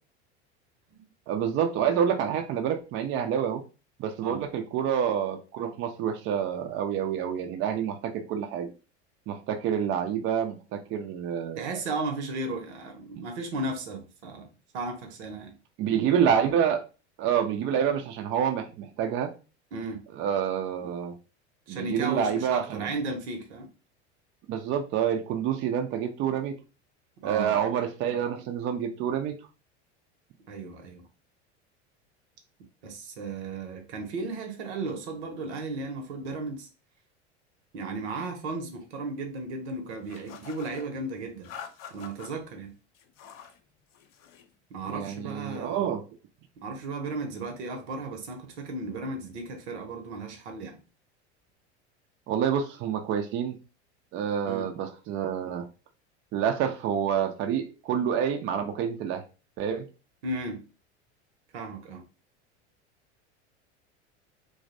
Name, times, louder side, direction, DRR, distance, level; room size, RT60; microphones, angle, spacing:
voice 1, 1.3-3.6 4.0-8.7 9.3-11.7 13.2-13.3 15.8-16.8 17.2-19.3 20.2-21.1 21.7-22.9 24.5-26.5 27.2-29.4 44.9-46.0 52.3-53.6 54.1-55.6 56.3-59.2 59.6-59.8, right 8 dB, 35° right, 0.4 m, -28 dB
voice 2, 11.5-14.5 14.7-15.6 19.7-20.0 21.7-23.7 27.2-27.6 30.5-31.0 32.8-36.7 37.7-41.5 41.9-42.7 44.7-46.0 46.6-50.8 54.5-54.7 60.2-60.6 61.5-62.0, right 3 dB, 75° right, 0.7 m, -35 dB
sound 1, 40.1-40.9 41.4-42.3 42.9-43.6 43.9-44.5, left 8 dB, 55° left, 0.5 m, -45 dB
2.5 x 2.0 x 2.5 m
hypercardioid pair, 90°, 34 cm